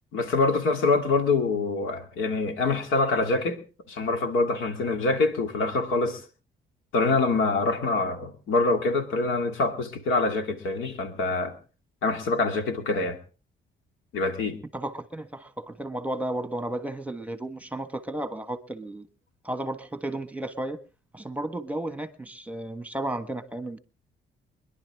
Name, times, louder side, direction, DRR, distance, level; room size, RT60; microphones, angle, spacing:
voice 1, 0.1-3.6 3.9-6.2 6.9-11.5 12.0-13.2 14.1-14.6, left 3 dB, 85° left, 2.4 m, -25 dB
voice 2, 14.7-19.1 19.4-20.8 21.1-23.8, right 1 dB, 5° right, 1.5 m, -33 dB
25.0 x 11.0 x 3.6 m
cardioid pair, 90°, 20 cm